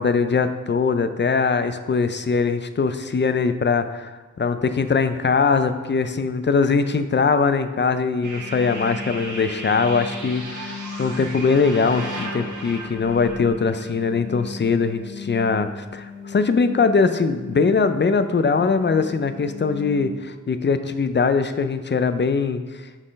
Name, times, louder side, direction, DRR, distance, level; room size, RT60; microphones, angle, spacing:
voice 1, 0.0-4.1 4.4-22.8, left 5 dB, 35° left, 10 dB, 0.4 m, -21 dB
sound 1, 8.2-20.1, left 1 dB, 80° right, 1.3 m, -34 dB
6.2 x 3.8 x 5.1 m, 1.3 s
wide cardioid pair, 55°, 31 cm